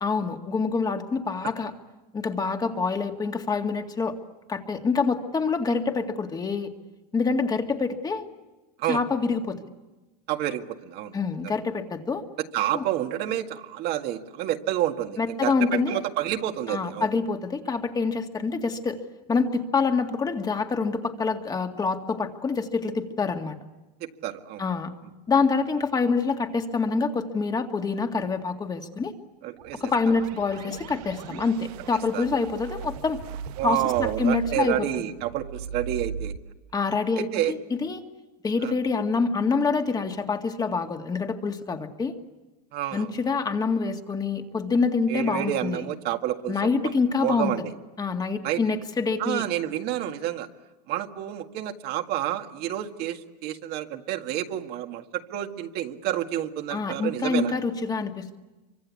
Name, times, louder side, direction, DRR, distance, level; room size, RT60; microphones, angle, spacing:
voice 1, 0.0-1.7 2.1-4.2 4.5-6.7 7.1-8.3 8.9-9.6 11.1-12.2 12.7-12.8 15.2-16.0 16.7-19.0 19.3-23.6 24.6-24.9 25.3-29.1 29.8-33.2 33.6-35.0 36.7-38.0 38.4-42.1 42.9-45.8 46.5-47.5 48.0-49.4 56.7-58.4, left 4 dB, 20° left, 5 dB, 2.1 m, -26 dB
voice 2, 10.3-11.1 12.5-15.5 15.9-17.1 24.0-24.6 29.4-29.8 32.1-32.2 33.6-36.3 37.3-37.5 38.6-38.7 42.7-43.1 45.1-46.6 47.2-47.6 48.4-48.6 49.2-50.5 50.9-55.0 55.3-57.5, right 12 dB, 50° right, 6 dB, 1.9 m, -29 dB
sound 1, 29.5-36.4, right 7 dB, 70° right, 1.1 m, -38 dB
26.5 x 24.5 x 8.5 m, 1.1 s
supercardioid pair, 120°, 21 cm